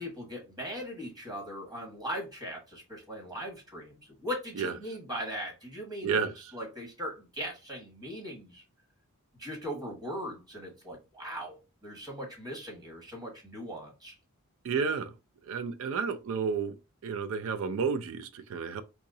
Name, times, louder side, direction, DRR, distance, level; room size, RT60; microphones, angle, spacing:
voice 1, 0.0-8.6 9.4-14.1, equal, 20° right, 1.4 m, -39 dB
voice 2, 6.0-6.5 14.6-15.1 15.4-16.8 17.0-18.8, right 5 dB, 65° right, 0.4 m, -31 dB
3.5 x 2.9 x 2.7 m
head